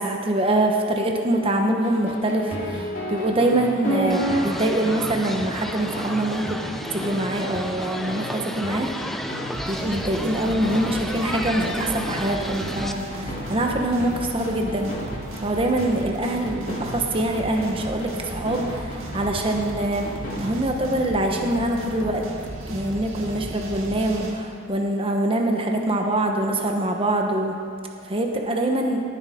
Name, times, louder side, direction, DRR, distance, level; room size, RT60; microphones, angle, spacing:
voice 1, 0.0-6.6 6.9-8.9 9.7-14.9 15.4-20.1 20.4-22.2 22.7-27.5 28.0-29.0, right 1 dB, 25° right, 2 dB, 1.0 m, -24 dB
sound 1, 1.8-20.5, right 1 dB, 40° left, 3.3 m, -31 dB
sound 2, 4.1-12.9, equal, ahead, 0.4 m, -33 dB
sound 3, 9.5-24.3, right 1 dB, 90° right, 2.0 m, -35 dB
19.0 x 8.1 x 5.1 m, 2.3 s
head